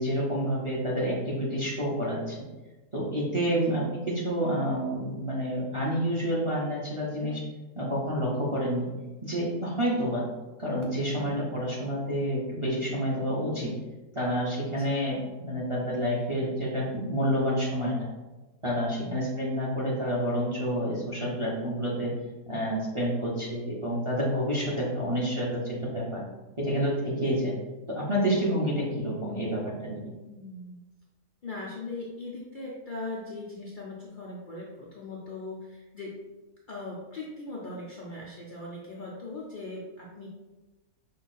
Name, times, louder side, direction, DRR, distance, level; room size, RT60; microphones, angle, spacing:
voice 1, 0.0-2.4 2.9-7.4 7.8-8.9 9.2-10.2 10.6-13.7 14.1-18.0 18.6-22.1 22.5-26.2 26.6-27.5 27.9-30.1, equal, 30° right, -5 dB, 0.6 m, -29 dB
voice 2, 18.9-19.3 27.2-27.4 30.2-30.8 31.4-36.2 36.7-40.3, left 2 dB, 90° left, -5 dB, 0.4 m, -40 dB
5.3 x 2.3 x 4.1 m, 1.1 s
omnidirectional pair, 1.7 m